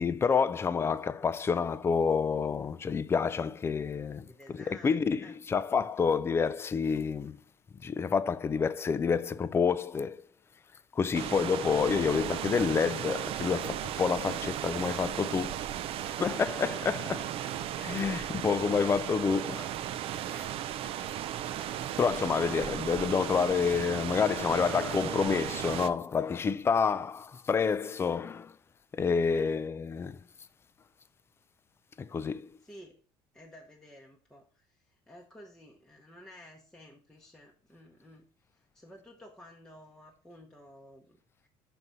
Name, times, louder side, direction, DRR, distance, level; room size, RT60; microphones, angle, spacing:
voice 1, 0.0-7.4 7.8-10.3 10.9-15.6 16.1-17.3 17.8-19.7 20.8-21.1 22.0-28.6 28.9-30.2 32.0-32.5, left 6 dB, 20° left, 0.3 m, -28 dB
voice 2, 4.3-5.4 19.2-19.6 20.3-21.4 29.3-29.4 32.6-33.0 33.3-41.5, left 1 dB, 5° left, 0.8 m, -54 dB
sound 1, 11.1-25.9, right 11 dB, 55° right, 0.4 m, -36 dB
6.0 x 4.0 x 5.4 m
cardioid pair, 130°, 12 cm